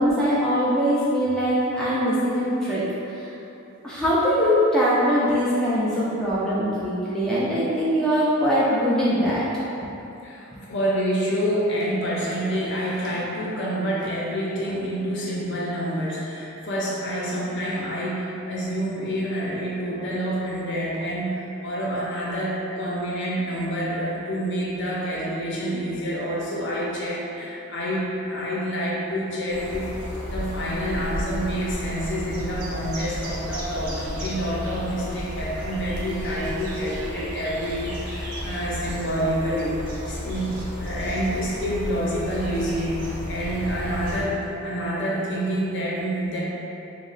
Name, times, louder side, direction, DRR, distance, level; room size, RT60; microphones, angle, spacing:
voice 1, 0.0-2.8 3.2-3.3 3.8-9.4 9.8-9.9, equal, 5° left, -10 dB, 0.3 m, -22 dB
voice 2, 10.2-29.9 30.3-46.4, equal, 55° left, -5 dB, 0.6 m, -27 dB
sound 1, 29.5-44.2, equal, 90° right, 0.6 m, -33 dB
3.0 x 2.0 x 3.8 m, 2.9 s
head